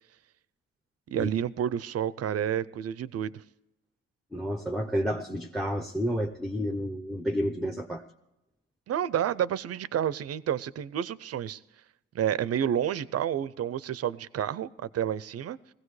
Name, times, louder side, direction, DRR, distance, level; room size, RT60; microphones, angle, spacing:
voice 1, 1.1-3.4 8.9-11.6 12.1-15.6, right 9 dB, 55° right, 18 dB, 0.5 m, -30 dB
voice 2, 4.3-8.0, equal, ahead, 6 dB, 0.7 m, -30 dB
19.5 x 16.0 x 3.2 m, 0.94 s
cardioid pair, 110°, 29 cm